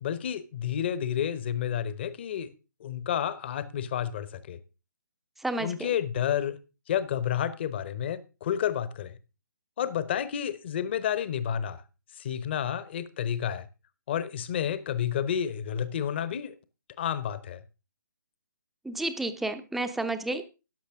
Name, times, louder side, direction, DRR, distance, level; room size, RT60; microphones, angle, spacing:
voice 1, 0.0-2.5 2.8-4.6 5.6-6.6 6.9-9.2 9.8-11.8 12.2-13.7 14.1-16.5 17.0-17.6, left 9 dB, 30° left, 1.0 m, -30 dB
voice 2, 5.4-5.9 18.8-20.5, right 2 dB, ahead, 0.7 m, -31 dB
13.5 x 10.0 x 3.7 m
figure-of-eight pair, 140°, 11 cm